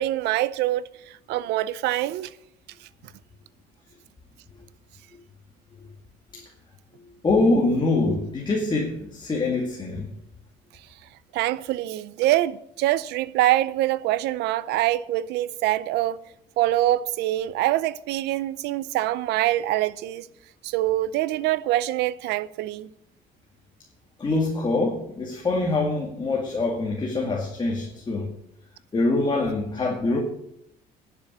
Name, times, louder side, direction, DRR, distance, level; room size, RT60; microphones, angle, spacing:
voice 1, 0.0-2.3 11.3-16.2 16.6-20.3 20.6-22.9, right 15 dB, 85° right, 0.6 m, -24 dB
voice 2, 7.2-10.1 24.2-28.3 28.9-30.2, left 2 dB, 25° left, 2.2 m, -24 dB
11.0 x 7.0 x 8.3 m
cardioid pair, 110°, 17 cm